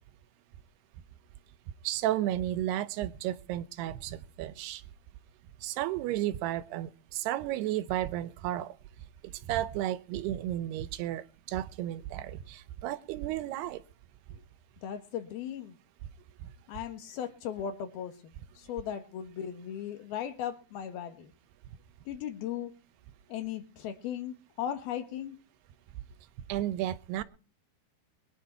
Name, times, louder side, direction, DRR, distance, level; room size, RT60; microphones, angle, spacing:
voice 1, 1.8-4.8 5.6-8.8 9.2-13.8 16.4-16.5 26.5-27.2, right 13 dB, 90° right, 16 dB, 2.9 m, -33 dB
voice 2, 14.8-15.8 16.7-21.3 22.1-22.7 23.3-25.4, left 9 dB, 75° left, 8 dB, 3.4 m, -37 dB
22.5 x 10.0 x 4.5 m, 0.38 s
omnidirectional pair, 4.6 m